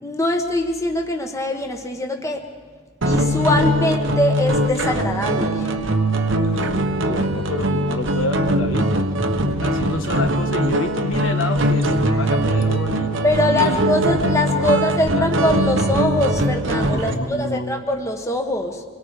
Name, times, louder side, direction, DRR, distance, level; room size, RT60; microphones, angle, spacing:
voice 1, 0.0-2.5 3.0-5.8 9.4-9.6 13.2-18.8, left 1 dB, 15° left, 3 dB, 1.3 m, -22 dB
sound 1, 3.0-17.1, right 1 dB, 65° right, 1.2 m, -21 dB
voice 2, 7.0-9.1 9.6-13.1 13.5-13.8 14.5-15.3 16.9-17.9, left 1 dB, 70° left, 5 dB, 1.6 m, -28 dB
27.5 x 22.5 x 4.9 m, 1.5 s
head